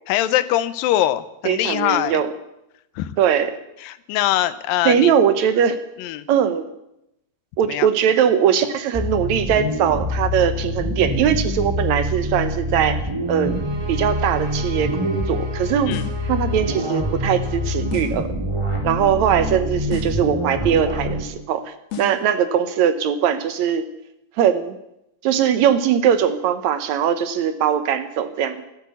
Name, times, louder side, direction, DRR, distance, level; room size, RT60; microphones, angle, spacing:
voice 1, 0.1-2.2 3.0-3.2 3.8-5.1 6.0-6.2 7.7-7.9 15.9-16.0, left 13 dB, 85° left, 14 dB, 2.5 m, -22 dB
voice 2, 1.5-2.3 3.2-3.5 4.9-5.8 6.3-6.7 7.6-13.0 13.3-13.6 13.9-15.9 16.3-18.3 18.8-23.9 24.4-24.8 25.2-28.6, right 8 dB, 70° right, 10 dB, 1.9 m, -20 dB
sound 1, 8.9-21.2, equal, 10° right, 2.0 m, -25 dB
sound 2, 13.3-18.2, right 5 dB, 40° right, 2.6 m, -37 dB
sound 3, 15.9-16.3 17.9-18.3 19.9-20.3 21.9-22.3, left 10 dB, 50° left, 2.5 m, -33 dB
12.5 x 12.5 x 8.2 m, 0.85 s
omnidirectional pair, 3.9 m